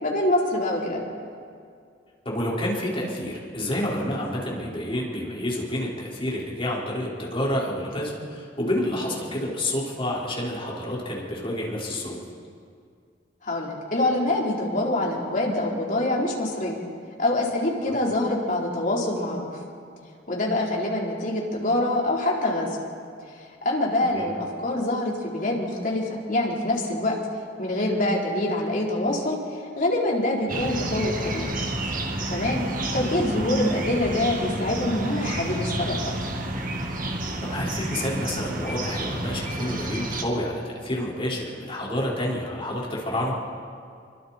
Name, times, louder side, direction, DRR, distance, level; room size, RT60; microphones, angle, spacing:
voice 1, 0.0-1.0 13.4-16.8 17.2-19.5 20.3-22.7 23.4-27.1 27.6-31.5 32.3-32.6 32.9-36.1, left 1 dB, 50° left, -3 dB, 4.3 m, -25 dB
voice 2, 2.2-12.2 17.9-18.0 24.1-24.2 33.1-33.3 37.5-43.3, left 1 dB, 30° left, -6 dB, 5.1 m, -29 dB
sound 1, 30.5-40.2, right 1 dB, 50° right, 2.0 m, -30 dB
28.0 x 24.5 x 4.5 m, 2.3 s
head